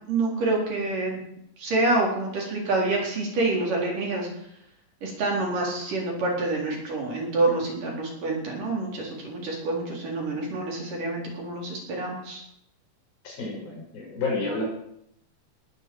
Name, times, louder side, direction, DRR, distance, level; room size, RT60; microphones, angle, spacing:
voice 1, 0.1-1.2 1.6-4.3 5.0-12.4, right 2 dB, 55° right, -1 dB, 5.4 m, -27 dB
voice 2, 13.2-14.6, left 3 dB, 60° left, -1 dB, 7.3 m, -30 dB
20.0 x 8.2 x 7.8 m, 0.73 s
omnidirectional pair, 4.7 m